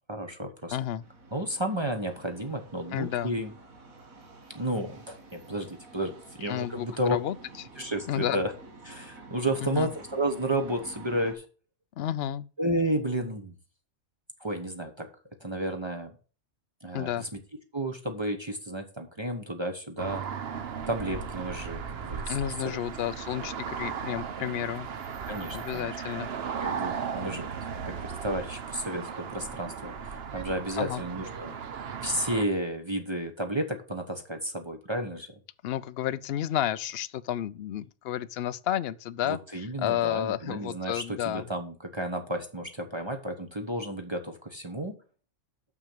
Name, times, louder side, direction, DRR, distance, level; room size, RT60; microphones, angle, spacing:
voice 1, 0.1-0.8 1.3-3.5 4.5-7.2 7.8-8.5 8.8-11.4 12.6-13.5 14.4-15.1 15.4-16.2 16.8-17.4 17.7-20.2 20.9-22.8 25.3-26.0 26.5-31.5 32.0-35.3 39.2-45.0, right 1 dB, 25° right, 0.9 m, -32 dB
voice 2, 0.7-1.0 2.9-3.3 6.5-7.3 8.1-8.4 9.6-9.9 12.0-12.4 16.9-17.2 22.3-24.9 25.5-26.3 30.8-31.0 35.6-41.4, left 11 dB, 65° left, 0.6 m, -31 dB
sound 1, 1.0-11.3, right 3 dB, 90° right, 2.2 m, -50 dB
sound 2, 20.0-32.4, right 7 dB, 55° right, 1.0 m, -36 dB
6.5 x 6.1 x 7.2 m
omnidirectional pair, 1.4 m